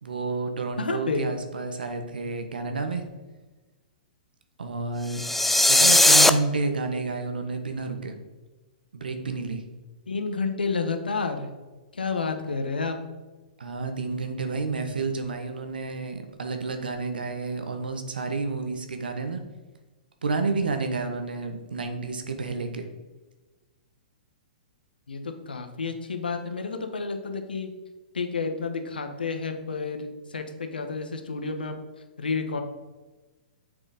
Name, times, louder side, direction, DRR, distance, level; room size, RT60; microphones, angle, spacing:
voice 1, 0.0-3.0 4.6-5.2 5.7-8.1 8.9-9.6 13.6-19.4 20.2-22.9, right 3 dB, 80° right, 6 dB, 1.3 m, -30 dB
voice 2, 0.8-1.3 10.1-11.5 11.9-13.0 25.1-27.7 28.1-31.8 32.2-32.6, left 4 dB, 85° left, 6 dB, 1.3 m, -30 dB
sound 1, 5.1-6.3, left 1 dB, 5° left, 0.4 m, -17 dB
7.7 x 6.0 x 5.0 m, 1.2 s
hypercardioid pair, 125°, 5 cm